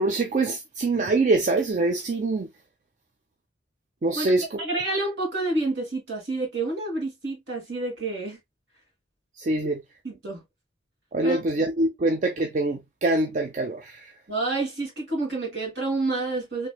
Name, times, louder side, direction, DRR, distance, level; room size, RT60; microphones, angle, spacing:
voice 1, 0.0-2.5 4.0-4.6 9.4-9.8 11.1-14.1, right 2 dB, 45° right, 0.5 m, -24 dB
voice 2, 4.6-8.4 10.0-10.4 11.2-11.4 14.3-16.7, right 2 dB, 70° right, 2.1 m, -28 dB
3.2 x 3.1 x 2.2 m
head